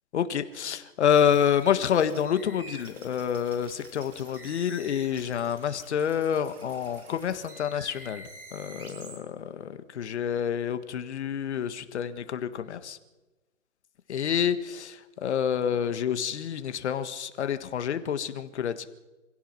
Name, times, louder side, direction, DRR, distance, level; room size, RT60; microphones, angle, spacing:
voice 1, 0.1-13.0 14.1-18.9, left 8 dB, 50° left, 11 dB, 1.8 m, -28 dB
sound 1, 1.1-9.2, right 2 dB, 85° right, 7.5 m, -48 dB
27.5 x 16.5 x 6.0 m, 1.1 s
hypercardioid pair, 150°, 44 cm